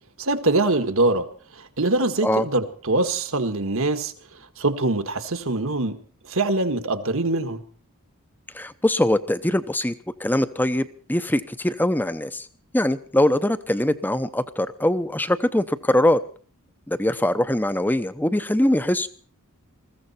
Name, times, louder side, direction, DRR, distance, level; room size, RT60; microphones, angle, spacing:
voice 1, 0.2-1.3 1.5-4.1 4.6-6.0 6.2-7.6, right 2 dB, 65° right, 9 dB, 1.7 m, -23 dB
voice 2, 8.5-9.9 10.2-12.5 12.7-16.2 16.9-19.1, left 1 dB, 10° left, 13 dB, 0.7 m, -22 dB
21.0 x 15.5 x 4.3 m, 0.43 s
head